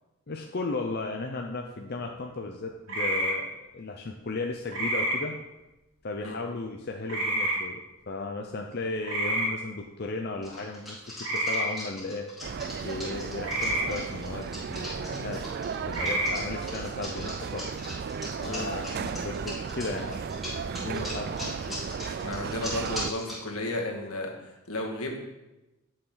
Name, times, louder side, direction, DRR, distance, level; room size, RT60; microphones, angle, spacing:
voice 1, 0.3-5.3 6.0-12.3 12.8-15.4 15.9-17.7 18.4-20.2 20.7-21.8 22.0-22.1, left 3 dB, 45° left, 2 dB, 0.6 m, -35 dB
sound 1, 2.9-3.3 4.7-5.2 7.1-7.6 9.0-9.5 11.2-11.7 13.4-13.8 15.9-16.3, right 1 dB, 75° right, 3.2 m, -28 dB
sound 2, 10.4-23.4, left 1 dB, ahead, 3.8 m, -40 dB
sound 3, 12.4-23.1, right 6 dB, 45° right, 0.3 m, -35 dB
voice 2, 22.1-25.2, left 1 dB, 75° left, 1 dB, 1.9 m, -33 dB
12.0 x 6.5 x 3.9 m, 1.0 s
head